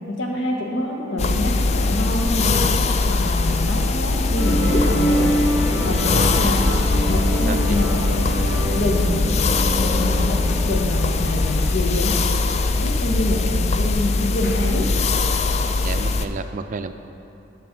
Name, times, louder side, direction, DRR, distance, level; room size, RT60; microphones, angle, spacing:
voice 1, 0.1-2.8 3.1-5.3 5.8-6.6 7.1-8.0 8.8-9.2 9.8-12.2 12.8-14.9, left 1 dB, 80° left, 0 dB, 1.4 m, -26 dB
sound 1, 1.2-16.3, left 3 dB, 35° left, 0.4 m, -21 dB
sound 2, 4.4-14.7, equal, 60° left, 1.4 m, -27 dB
sound 3, 5.4-11.4, right 1 dB, 20° left, 1.0 m, -39 dB
voice 2, 7.5-7.8 15.8-16.9, right 4 dB, 45° right, 9 dB, 0.4 m, -31 dB
12.0 x 4.3 x 6.8 m, 2.8 s
head